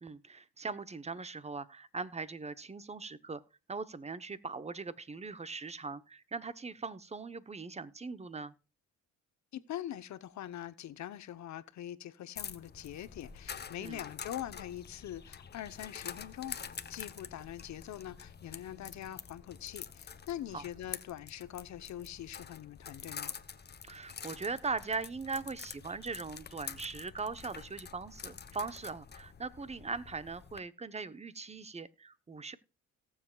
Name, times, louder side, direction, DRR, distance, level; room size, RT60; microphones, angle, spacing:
voice 1, 0.0-3.4 3.7-8.5 13.8-14.0 20.5-20.6 23.8-32.5, right 4 dB, 20° right, 0.9 m, -40 dB
voice 2, 9.5-23.3, left 12 dB, 60° left, 0.9 m, -43 dB
sound 1, 12.4-30.6, left 6 dB, 30° left, 0.9 m, -47 dB
17.5 x 7.4 x 2.3 m
cardioid pair, 80°, 31 cm